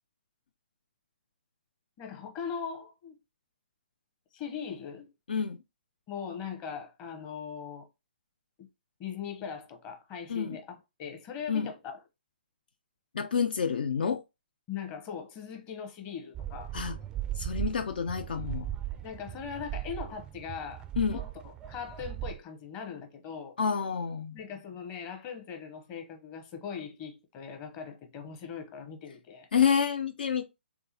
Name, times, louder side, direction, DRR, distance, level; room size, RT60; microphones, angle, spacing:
voice 1, 2.0-3.2 4.3-5.1 6.1-7.9 8.6-8.7 9.0-12.0 14.7-16.8 19.0-23.5 24.3-29.5, left 7 dB, 25° left, 0.8 m, -40 dB
voice 2, 13.1-14.2 16.7-17.0 17.4-18.7 21.0-21.2 23.6-24.4 29.5-30.5, left 6 dB, 60° left, 0.4 m, -28 dB
sound 1, 16.3-22.4, right 12 dB, 15° right, 0.4 m, -38 dB
3.6 x 3.4 x 2.8 m
figure-of-eight pair, 130°, 6 cm